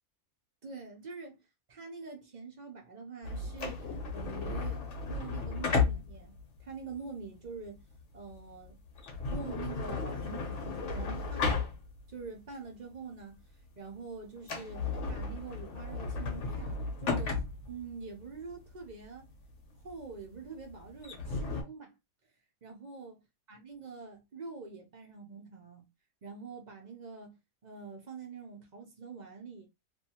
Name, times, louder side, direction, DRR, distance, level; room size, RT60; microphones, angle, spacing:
voice 1, 0.6-1.4 1.7-4.8 5.1-6.3 6.6-7.8 8.1-8.8 9.3-11.5 12.1-13.4 13.8-19.3 19.8-21.9 22.6-23.2 23.5-25.9 26.2-29.7, right 4 dB, 45° right, 0.6 m, -45 dB
sound 1, 3.2-12.2 12.6-12.7 13.3-13.6 13.9-14.0 14.4-21.6, left 4 dB, 60° left, 1.1 m, -34 dB
2.7 x 2.6 x 2.8 m
omnidirectional pair, 1.5 m